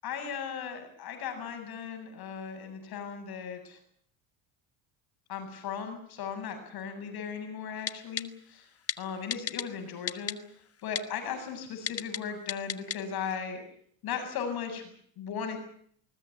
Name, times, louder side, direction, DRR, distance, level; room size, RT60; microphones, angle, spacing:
voice 1, 0.0-3.8 5.3-8.7 9.0-10.4 10.8-13.6 14.0-15.6, left 7 dB, 55° left, 6 dB, 7.9 m, -37 dB
Typing, 7.9-8.2 8.9-9.0 9.3-9.6 10.1-10.3 11.0-11.1 11.9-12.2 12.5-13.0 13.3-13.4, left 9 dB, 35° left, 1.2 m, -31 dB
20.5 x 20.0 x 9.6 m, 0.62 s
supercardioid pair, 90°, 43 cm